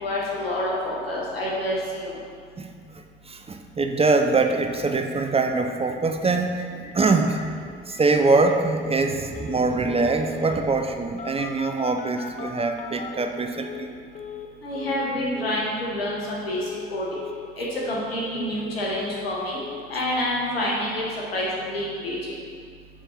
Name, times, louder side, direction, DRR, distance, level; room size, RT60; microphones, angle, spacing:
voice 1, 0.0-2.1 14.6-16.6 16.9-17.0 17.6-19.6 19.9-21.0 21.3-22.2, left 1 dB, 90° left, -5 dB, 0.9 m, -27 dB
voice 2, 2.9-6.7 6.9-7.4 7.9-13.9, right 3 dB, 20° right, 5 dB, 0.5 m, -23 dB
Telephone, 4.4-4.5 4.8-4.9 5.1-5.2 5.5-5.9 6.2-6.3 6.6-6.9 7.3-7.4 7.9-8.6 9.3-9.6 9.8-10.6 11.2-13.9 14.1-14.5 14.7-15.1 15.3-15.7 15.9-16.3 16.5-16.9 17.1-17.5 17.7-18.7 18.9-19.3 19.5-19.8, left 7 dB, 25° left, 0.6 m, -38 dB
6.9 x 3.7 x 4.2 m, 2.2 s
figure-of-eight pair, 45°, 29 cm